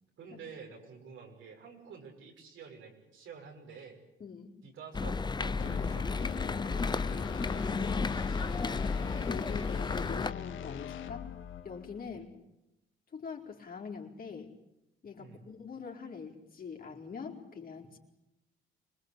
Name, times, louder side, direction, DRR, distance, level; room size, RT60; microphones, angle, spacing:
voice 1, 0.2-4.0 4.6-6.3 6.7-6.9 7.5-8.9 12.0-12.3 15.2-15.4, right 6 dB, 75° right, 2 dB, 6.1 m, -50 dB
voice 2, 4.2-4.5 7.8-8.0 9.2-11.3 11.6-12.3 13.1-14.5 15.0-18.0, left 6 dB, 45° left, 1 dB, 4.5 m, -43 dB
sound 1, 4.9-10.3, left 4 dB, 20° left, 0.8 m, -32 dB
sound 2, 5.6-12.1, left 9 dB, 75° left, 1.5 m, -42 dB
25.5 x 20.5 x 8.3 m, 0.92 s
cardioid pair, 90°, 20 cm